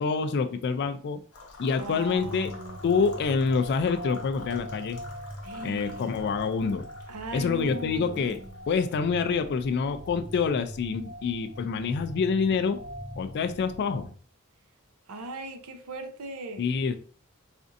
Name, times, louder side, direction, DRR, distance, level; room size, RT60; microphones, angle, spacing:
voice 1, 0.0-1.2 1.6-2.5 2.8-5.0 5.6-6.9 7.3-8.4 8.7-12.8 13.2-14.1 16.6-17.0, left 5 dB, 50° left, 0.3 m, -27 dB
sound 1, 1.3-11.1, left 2 dB, 85° left, 0.9 m, -50 dB
voice 2, 1.8-2.8 5.4-6.2 7.1-8.5 15.1-16.6, right 2 dB, 85° right, 0.6 m, -39 dB
sound 2, 2.2-14.1, equal, 45° right, 0.6 m, -42 dB
4.2 x 2.5 x 2.5 m
head